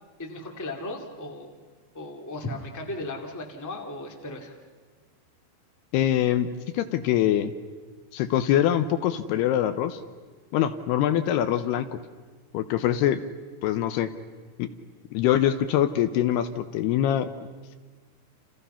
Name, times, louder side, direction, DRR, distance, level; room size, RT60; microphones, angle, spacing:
voice 1, 0.2-1.5 1.9-4.5, left 2 dB, 5° left, 1 dB, 1.3 m, -36 dB
voice 2, 5.9-6.5 6.7-7.5 8.1-10.0 10.5-11.9 12.5-13.2 13.6-14.1 14.6-14.7 15.1-17.3, left 11 dB, 75° left, 10 dB, 2.7 m, -23 dB
29.5 x 28.5 x 5.7 m, 1.4 s
omnidirectional pair, 5.0 m